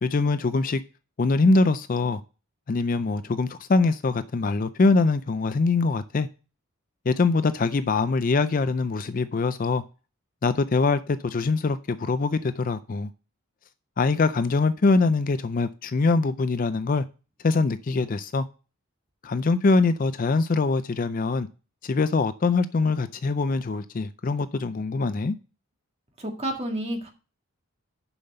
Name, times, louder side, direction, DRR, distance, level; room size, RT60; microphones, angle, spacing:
voice 1, 0.0-0.8 1.2-2.2 2.7-6.3 7.1-9.8 10.4-13.1 14.0-17.0 17.4-18.5 19.2-21.5 21.8-25.4, left 3 dB, 40° left, 0.4 m, -23 dB
voice 2, 26.2-27.1, right 1 dB, 25° right, 1.8 m, -30 dB
7.0 x 5.6 x 6.6 m
head